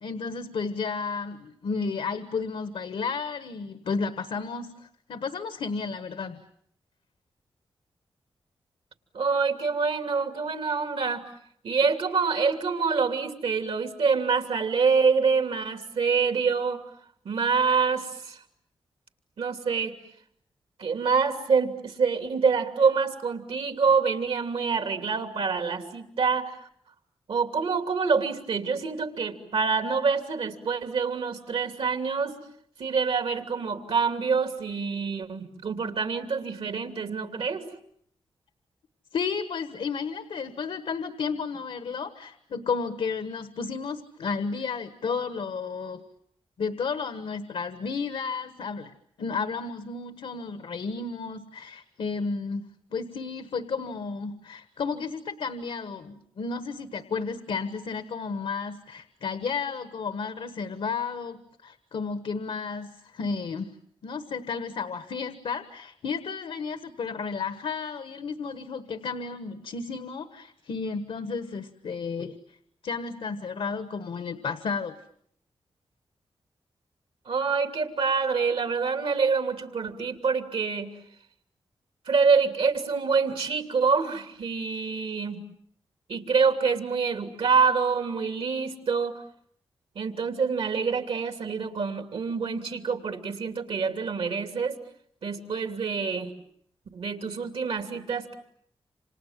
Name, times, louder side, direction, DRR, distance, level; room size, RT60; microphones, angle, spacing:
voice 1, 0.0-6.4 39.1-46.0 46.6-52.7 52.9-63.7 64.0-72.4 72.8-74.9, left 5 dB, 85° left, 10 dB, 1.4 m, -32 dB
voice 2, 9.1-11.2 11.6-16.8 17.2-18.4 19.4-19.9 20.8-26.6 27.3-32.4 32.8-37.7 77.3-80.9 82.1-85.4 86.1-89.2 89.9-94.8 95.2-96.3 96.9-98.3, right 5 dB, 80° right, 7 dB, 2.9 m, -26 dB
28.5 x 27.0 x 7.5 m, 0.67 s
cardioid pair, 65°, 10 cm